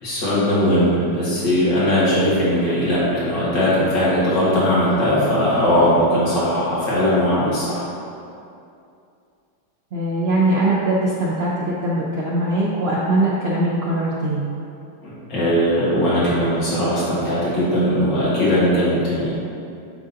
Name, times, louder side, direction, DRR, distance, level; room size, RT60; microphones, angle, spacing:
voice 1, 0.0-7.9 15.0-19.3, equal, 70° left, -10 dB, 2.4 m, -19 dB
voice 2, 9.9-14.5, right 1 dB, 85° right, -6 dB, 0.5 m, -21 dB
9.3 x 3.8 x 2.8 m, 2.5 s
omnidirectional pair, 2.0 m